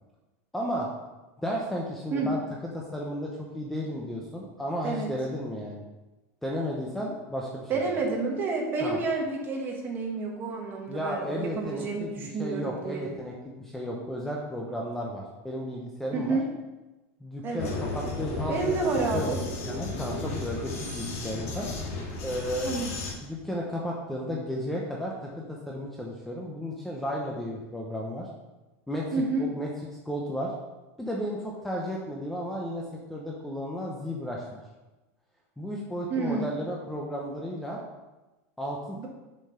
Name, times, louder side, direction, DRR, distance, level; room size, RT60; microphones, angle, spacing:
voice 1, 0.5-0.9 1.4-2.4 2.7-5.8 6.4-8.0 8.8-9.0 10.9-16.4 17.2-18.7 19.1-21.7 22.2-22.7 23.2-28.3 28.9-29.7 30.0-30.5 31.0-32.8 33.1-34.6 35.6-37.8 38.6-39.1, equal, 5° left, -2 dB, 0.8 m, -33 dB
voice 2, 7.7-13.0 16.1-16.4 17.4-17.7 18.5-19.4 22.6-22.9 29.1-29.5 36.1-36.4 39.0-39.1, right 3 dB, 25° right, 0 dB, 1.6 m, -29 dB
Vehicle, 17.6-23.1, left 3 dB, 75° left, 2.0 m, -34 dB
7.2 x 5.4 x 5.6 m, 1.1 s
supercardioid pair, 155°, 8 cm